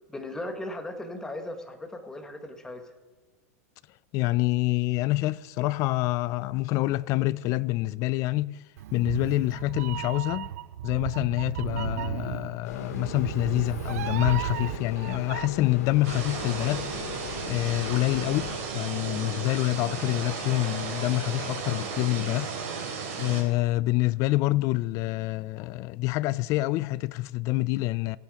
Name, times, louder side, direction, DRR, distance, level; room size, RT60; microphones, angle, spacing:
voice 1, 0.1-2.8, left 1 dB, 5° left, 1.2 m, -37 dB
voice 2, 4.1-8.6 8.9-10.5 10.8-17.1 17.5-22.5 23.2-28.2, left 19 dB, 40° left, 0.3 m, -27 dB
Meow, 8.8-15.5, right 13 dB, 70° right, 0.5 m, -34 dB
sound 1, 12.6-18.6, left 5 dB, 80° left, 2.3 m, -39 dB
sound 2, 16.0-23.4, right 5 dB, 55° right, 4.0 m, -34 dB
16.5 x 8.5 x 5.0 m
supercardioid pair, 140°, 9 cm